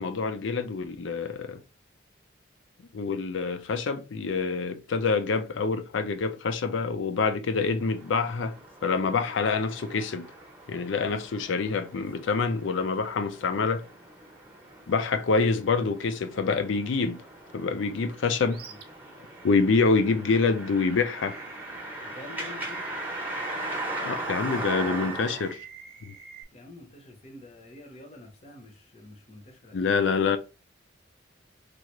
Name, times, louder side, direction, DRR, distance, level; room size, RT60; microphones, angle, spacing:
voice 1, 0.0-1.6 2.9-8.5 8.8-10.3 10.7-13.8 14.9-17.2 17.5-18.6 19.4-21.4 24.0-25.6 26.0-26.1 29.7-30.4, left 4 dB, 70° left, 0.4 m, -26 dB
sound 1, 7.8-25.5, right 1 dB, 10° right, 0.7 m, -39 dB
Animal, 18.5-18.8 19.3-19.5 21.1-21.8 22.5-26.4, right 6 dB, 50° right, 0.5 m, -44 dB
voice 2, 22.0-22.9 26.5-30.0, left 2 dB, 35° left, 0.7 m, -47 dB
3.4 x 2.4 x 3.0 m
head